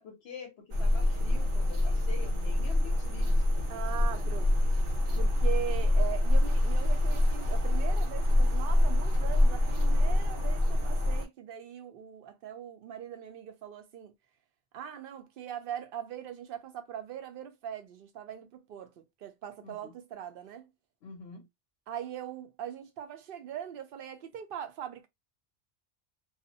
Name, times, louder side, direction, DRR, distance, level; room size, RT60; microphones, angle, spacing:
voice 1, 0.0-4.3 19.6-19.9 21.0-21.5, left 5 dB, 70° left, 0.8 m, -47 dB
sound 1, 0.7-11.3, left 1 dB, 85° right, 1.1 m, -26 dB
voice 2, 3.7-4.5 4.9-14.1 14.7-20.7 21.9-25.1, right 9 dB, 60° right, 0.7 m, -41 dB
2.4 x 2.0 x 2.6 m
omnidirectional pair, 1.2 m